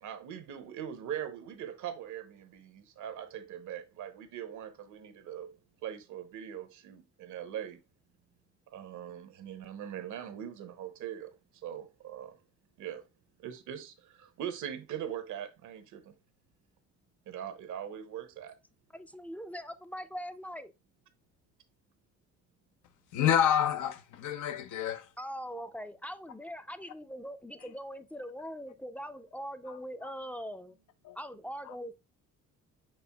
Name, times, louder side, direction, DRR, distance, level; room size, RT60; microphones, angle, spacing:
voice 1, 0.0-5.6 5.8-7.8 8.7-12.4 12.8-13.0 13.4-16.1 17.3-18.5, right 9 dB, 75° right, 0.8 m, -41 dB
voice 2, 18.9-20.7 25.2-30.8 31.2-31.9, equal, 5° left, 0.3 m, -41 dB
voice 3, 23.1-25.0 31.1-31.2, left 10 dB, 85° left, 0.6 m, -28 dB
5.2 x 4.3 x 2.2 m
cardioid pair, 90°, 30 cm